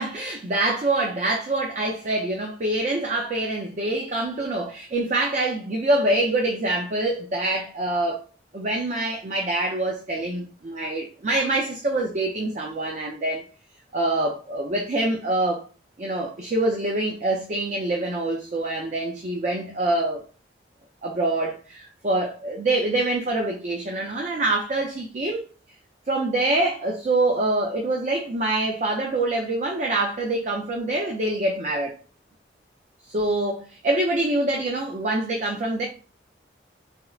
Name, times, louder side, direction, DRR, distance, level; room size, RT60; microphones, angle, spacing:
voice 1, 0.0-8.2 8.5-13.4 13.9-15.6 16.0-20.2 21.0-25.4 26.1-31.9 33.1-35.9, right 2 dB, 40° right, 0.4 m, -25 dB
4.2 x 2.0 x 2.3 m
head